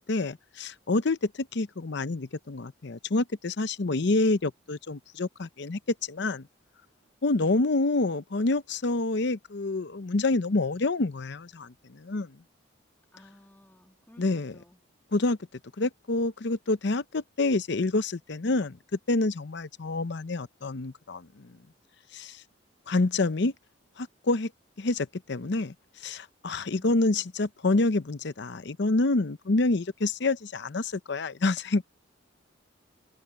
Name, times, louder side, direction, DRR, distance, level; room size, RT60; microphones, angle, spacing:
voice 1, 0.0-6.5 7.2-12.4 14.2-14.5 15.1-15.4 15.8-18.8 19.1-21.5 22.1-22.4 22.9-23.5 24.0-24.5 24.8-25.7 26.0-31.8, left 2 dB, 60° left, 0.7 m, -27 dB
voice 2, 7.4-7.7 13.1-14.2 14.5-14.8, left 1 dB, 10° left, 2.6 m, -55 dB
head